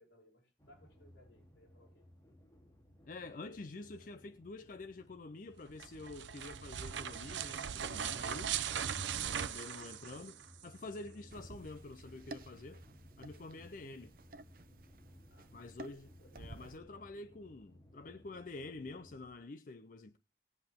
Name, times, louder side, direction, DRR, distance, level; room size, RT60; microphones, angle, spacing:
voice 1, 0.0-2.1 15.3-15.8 16.2-17.1, left 1 dB, 80° left, 5.1 m, -66 dB
sound 1, 0.6-19.3, equal, 15° left, 3.0 m, -60 dB
voice 2, 3.1-8.7 9.2-10.4 10.6-12.8 13.2-14.1 15.5-20.2, left 3 dB, 45° left, 0.5 m, -48 dB
sound 2, 5.7-10.6, right 8 dB, 90° right, 0.6 m, -39 dB
sound 3, 11.3-16.8, right 2 dB, 50° right, 0.7 m, -53 dB
19.5 x 7.9 x 3.5 m
head